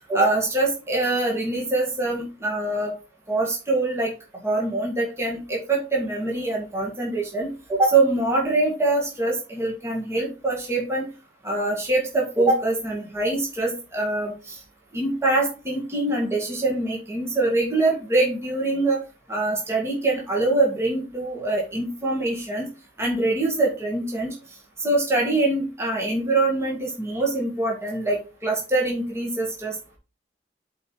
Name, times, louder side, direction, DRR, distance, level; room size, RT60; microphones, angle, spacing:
voice 1, 0.1-2.9 3.3-4.1 4.4-11.1 11.4-14.6 14.9-19.0 19.3-22.7 23.0-24.3 24.8-29.8, right 2 dB, 15° right, -2 dB, 1.9 m, -24 dB
7.6 x 4.6 x 4.6 m, 0.32 s
head